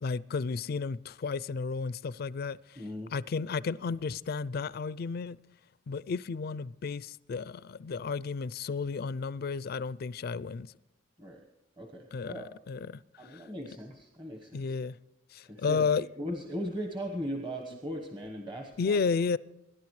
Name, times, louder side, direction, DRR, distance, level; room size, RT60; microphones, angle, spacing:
voice 1, 0.0-2.6 3.1-5.4 5.9-10.7 12.1-13.0 13.3-13.4 14.5-15.0 15.3-16.1 18.8-19.4, left 5 dB, 55° left, 0.4 m, -32 dB
voice 2, 2.8-3.1 11.2-11.4 11.8-12.5 13.2-14.7 15.4-19.0, equal, 25° right, 1.2 m, -38 dB
23.5 x 11.0 x 3.2 m
head